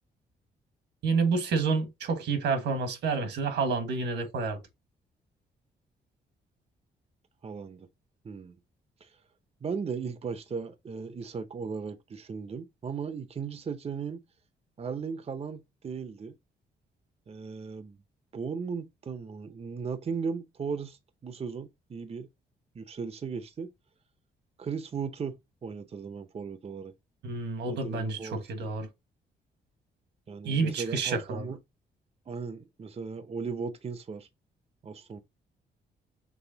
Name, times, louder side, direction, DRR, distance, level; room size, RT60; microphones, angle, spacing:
voice 1, 1.0-4.6 27.2-28.9 30.4-31.4, right 4 dB, 85° right, 1.4 m, -29 dB
voice 2, 7.4-7.9 8.2-8.6 9.0-9.2 9.6-14.2 14.8-16.3 17.3-18.0 18.3-22.3 22.7-23.7 24.6-26.9 27.7-28.7 30.3-31.6 32.3-34.3 34.8-35.2, right 5 dB, 35° right, 0.6 m, -37 dB
6.2 x 3.1 x 2.7 m
cardioid pair, 70°, 18 cm